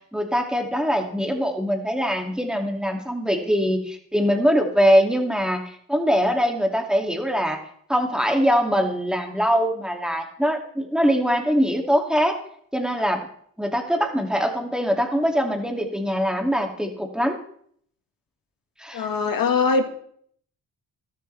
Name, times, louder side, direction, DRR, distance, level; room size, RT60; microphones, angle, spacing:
voice 1, 0.1-7.6 7.9-12.4 12.7-13.3 13.6-17.4 18.8-19.1, equal, ahead, 2 dB, 2.5 m, -22 dB
voice 2, 18.9-19.8, left 4 dB, 65° left, 6 dB, 1.7 m, -21 dB
12.5 x 12.0 x 3.4 m, 0.63 s
cardioid pair, 65°, 36 cm